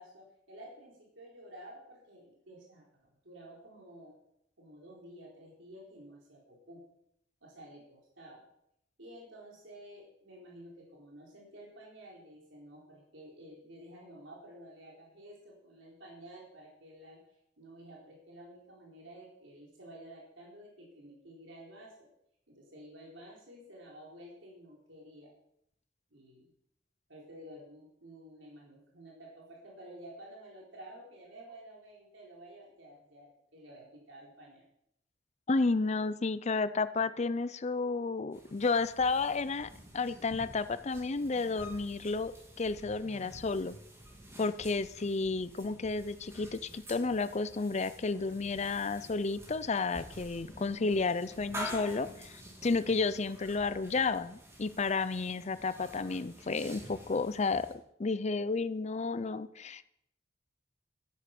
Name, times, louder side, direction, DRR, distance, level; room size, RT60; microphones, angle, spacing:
voice 1, 0.0-2.9 3.2-4.2 4.6-6.8 7.4-8.4 9.0-17.2 17.6-22.1 22.5-25.3 26.1-26.4 27.1-34.7, right 1 dB, 75° right, -3 dB, 4.2 m, -52 dB
voice 2, 35.5-42.3 42.6-43.8 44.4-57.7 58.0-59.8, left 3 dB, 35° left, 14 dB, 0.5 m, -32 dB
sound 1, 38.3-57.7, equal, 15° right, 2.8 m, -48 dB
12.5 x 10.0 x 6.0 m, 0.75 s
head